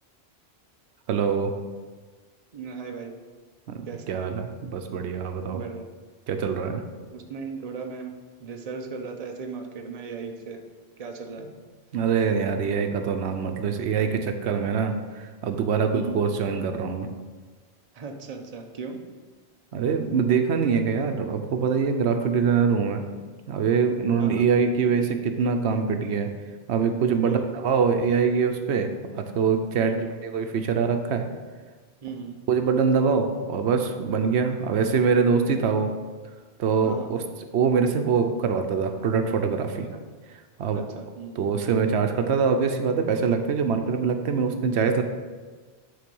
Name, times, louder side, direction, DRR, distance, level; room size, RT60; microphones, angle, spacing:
voice 1, 1.1-1.5 3.7-5.6 6.3-6.8 11.9-17.1 19.7-23.1 23.5-26.3 26.7-27.4 27.6-28.9 29.2-31.2 32.5-35.9 36.6-37.2 37.5-39.9 40.6-40.8 41.4-45.0, right 6 dB, 85° right, 6 dB, 0.9 m, -24 dB
voice 2, 2.5-3.1 3.9-4.2 5.5-5.8 7.1-8.1 8.4-10.6 11.0-11.5 15.9-16.2 17.9-19.0 24.2-24.4 27.2-27.8 29.8-30.1 32.0-32.4 36.8-37.1 39.9-40.0 40.7-41.4, right 5 dB, 40° right, 4 dB, 0.8 m, -37 dB
9.5 x 3.9 x 5.3 m, 1.4 s
omnidirectional pair, 1.1 m